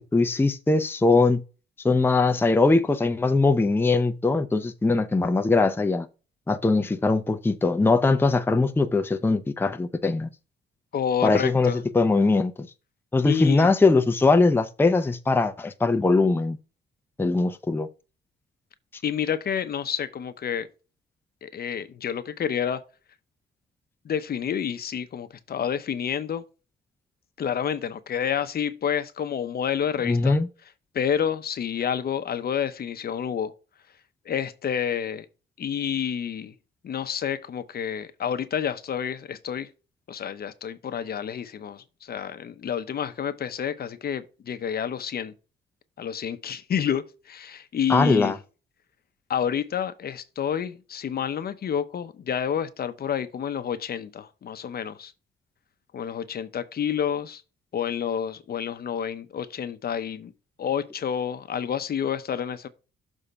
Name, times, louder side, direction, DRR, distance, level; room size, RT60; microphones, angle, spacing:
voice 1, 0.1-1.4 1.8-6.1 6.5-10.3 11.2-12.7 13.1-16.6 17.2-17.9 30.0-30.5 47.9-48.4, left 3 dB, 10° left, 0.6 m, -21 dB
voice 2, 10.9-11.8 13.2-13.7 19.0-20.7 21.4-22.8 24.0-26.4 27.4-30.4 30.9-33.5 34.3-35.3 35.6-36.5 36.8-39.7 40.1-45.3 46.0-48.3 49.3-55.1 55.9-57.4 57.7-60.3 60.6-62.7, left 8 dB, 50° left, 0.8 m, -29 dB
6.8 x 3.6 x 5.5 m
cardioid pair, 90°, 20 cm